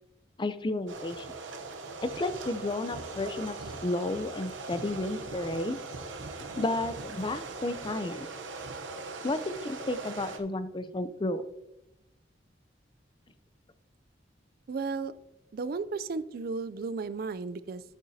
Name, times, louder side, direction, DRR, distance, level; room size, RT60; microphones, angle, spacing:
voice 1, 0.4-1.3 2.0-3.6 3.8-5.8 6.4-8.3 9.2-11.4, left 2 dB, 25° left, 12 dB, 0.5 m, -32 dB
sound 1, 0.9-10.4, right 3 dB, 90° right, 0.8 m, -40 dB
voice 2, 14.7-15.1 15.5-17.8, right 4 dB, 50° right, 14 dB, 0.4 m, -34 dB
10.5 x 8.6 x 2.7 m, 0.92 s
head